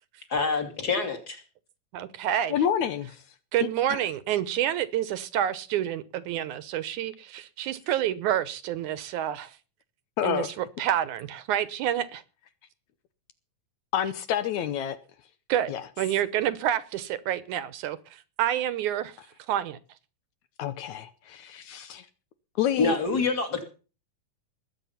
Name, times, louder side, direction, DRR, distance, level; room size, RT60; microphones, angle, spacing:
voice 1, 0.3-1.4 22.8-23.7, left 4 dB, 30° left, 2.9 m, -26 dB
voice 2, 1.9-2.5 3.5-9.6 10.2-12.2 15.5-19.2 19.5-19.8, right 11 dB, 75° right, 2.2 m, -28 dB
voice 3, 2.5-3.2 3.9-4.0 10.2-10.5 13.9-15.0 15.7-15.8 20.6-22.1 22.6-23.0, left 10 dB, 70° left, 2.0 m, -28 dB
20.0 x 8.7 x 5.7 m
omnidirectional pair, 3.8 m